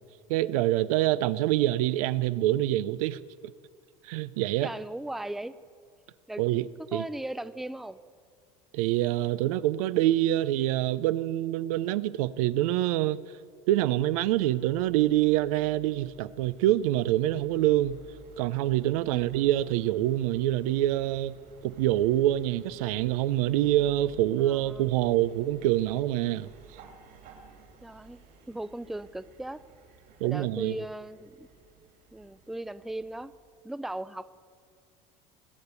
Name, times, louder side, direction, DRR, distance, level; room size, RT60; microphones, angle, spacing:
voice 1, 0.3-3.2 4.0-4.7 6.4-6.6 6.9-7.0 8.7-13.2 13.7-18.0 18.4-21.4 21.6-26.5 30.2-30.7, right 14 dB, 85° right, 0.5 m, -26 dB
voice 2, 4.6-5.5 6.3-6.4 6.9-8.0 19.1-19.3 24.4-24.9 27.8-28.2 28.5-29.6 30.2-31.5 32.1-33.3 33.6-34.3, right 1 dB, ahead, 0.4 m, -37 dB
sound 1, 14.4-33.4, right 6 dB, 60° right, 2.9 m, -54 dB
20.0 x 7.0 x 8.1 m
supercardioid pair, 100°, 18 cm